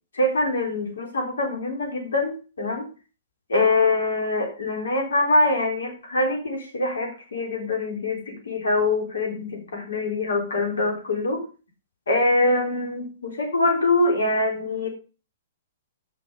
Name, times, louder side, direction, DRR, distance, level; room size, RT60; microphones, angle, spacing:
voice 1, 0.1-2.9 3.5-11.4 12.1-14.9, left 2 dB, 70° left, 2 dB, 3.7 m, -24 dB
10.5 x 6.4 x 5.4 m, 0.34 s
figure-of-eight pair, 115°, 0 cm